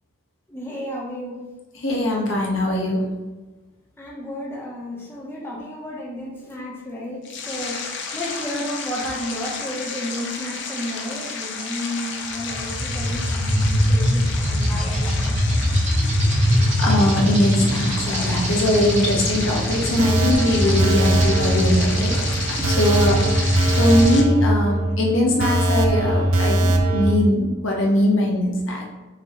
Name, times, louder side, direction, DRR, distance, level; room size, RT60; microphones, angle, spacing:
voice 1, 0.5-1.4 4.0-15.8, equal, 10° left, -4 dB, 0.7 m, -32 dB
voice 2, 1.8-3.1 16.8-22.2 22.5-28.9, left 1 dB, 70° left, -1 dB, 1.0 m, -21 dB
sound 1, 7.2-24.2, left 5 dB, 55° left, 0.6 m, -33 dB
sound 2, 12.3-24.2, equal, 35° right, 0.9 m, -23 dB
sound 3, 20.0-27.1, right 1 dB, 80° right, 0.6 m, -20 dB
6.2 x 2.8 x 2.9 m, 1.2 s
head